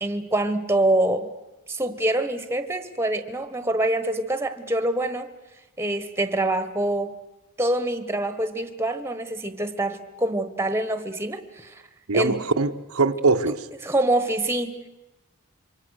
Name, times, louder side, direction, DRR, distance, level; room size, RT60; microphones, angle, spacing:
voice 1, 0.0-1.3 1.7-5.3 5.8-7.1 7.6-11.8 12.1-12.4 13.8-14.8, right 1 dB, 10° right, 1.2 m, -25 dB
voice 2, 12.1-13.7, right 3 dB, 85° right, 1.0 m, -22 dB
27.5 x 24.5 x 6.5 m
head